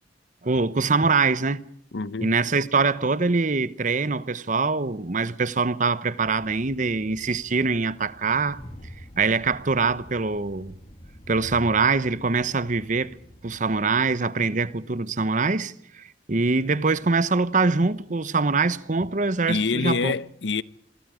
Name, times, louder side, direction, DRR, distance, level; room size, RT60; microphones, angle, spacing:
voice 1, 0.4-1.6 2.2-8.6 9.2-10.8 11.3-13.2 13.4-20.1, right 4 dB, 45° right, 0.9 m, -23 dB
voice 2, 1.9-2.3 19.5-20.6, left 4 dB, 80° left, 0.8 m, -26 dB
Train, 6.2-14.0, equal, 35° left, 2.2 m, -46 dB
27.0 x 23.5 x 5.0 m
head